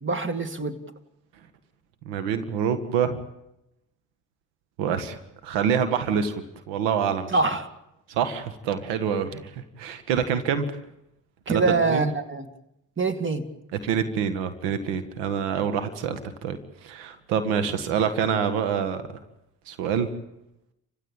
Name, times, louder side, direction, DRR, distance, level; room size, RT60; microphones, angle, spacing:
voice 1, 0.0-0.8 7.3-7.7 11.5-12.5 13.0-13.4, right 3 dB, 30° right, 9 dB, 2.6 m, -24 dB
voice 2, 2.1-3.2 4.8-5.2 5.4-7.4 8.1-9.5 9.8-10.7 11.5-11.6 11.9-12.1 13.8-19.0 19.7-20.1, right 7 dB, 80° right, 10 dB, 1.9 m, -26 dB
29.5 x 16.0 x 9.0 m, 0.88 s
supercardioid pair, 70°, 42 cm